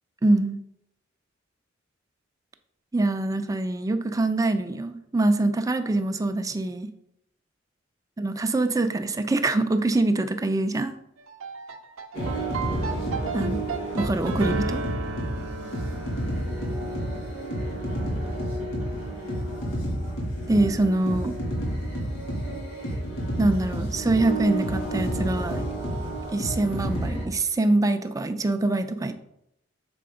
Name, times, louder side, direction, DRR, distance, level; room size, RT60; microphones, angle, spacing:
voice 1, 0.2-0.6 2.9-6.9 8.2-10.9 13.3-13.6 13.9-14.8 20.5-21.4 23.4-25.6 26.3-29.1, right 2 dB, 15° right, 8 dB, 0.4 m, -24 dB
sound 1, 11.2-19.5, right 4 dB, 80° right, 0.5 m, -36 dB
sound 2, 12.1-27.2, right 1 dB, 65° left, 2.5 m, -30 dB
6.8 x 4.2 x 3.7 m, 0.79 s
head